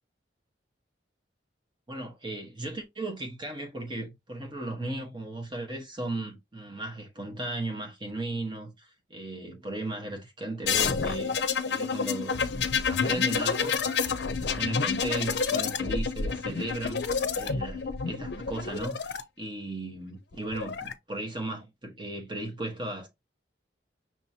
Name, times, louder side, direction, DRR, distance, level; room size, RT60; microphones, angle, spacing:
voice 1, 1.9-12.5 12.8-13.8 14.1-23.1, right 2 dB, 25° right, 1.2 m, -36 dB
sound 1, 10.6-19.2 20.3-20.9, left 5 dB, 65° left, 0.6 m, -29 dB
6.1 x 2.9 x 2.7 m
head